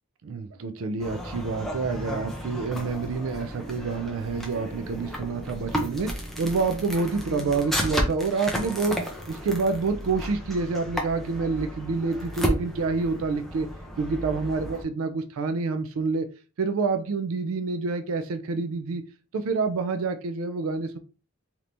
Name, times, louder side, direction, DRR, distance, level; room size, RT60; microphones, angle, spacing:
voice 1, 0.2-9.0 9.3-13.7 14.0-16.3 16.6-19.0 19.3-21.0, right 4 dB, 80° right, 9 dB, 0.4 m, -28 dB
sound 1, 1.0-14.8, equal, ahead, 0.5 m, -33 dB
3.3 x 2.8 x 2.6 m, 0.35 s
head